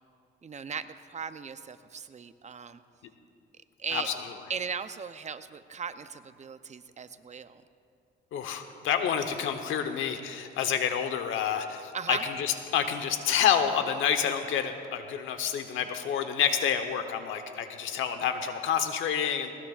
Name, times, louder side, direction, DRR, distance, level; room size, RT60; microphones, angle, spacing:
voice 1, 0.4-2.8 3.8-4.1 4.5-7.6 11.9-12.3, right 6 dB, 35° right, 11 dB, 0.6 m, -37 dB
voice 2, 8.3-19.5, left 8 dB, 85° left, 7 dB, 1.1 m, -28 dB
19.5 x 19.0 x 2.5 m, 2.4 s
cardioid pair, 90°, 20 cm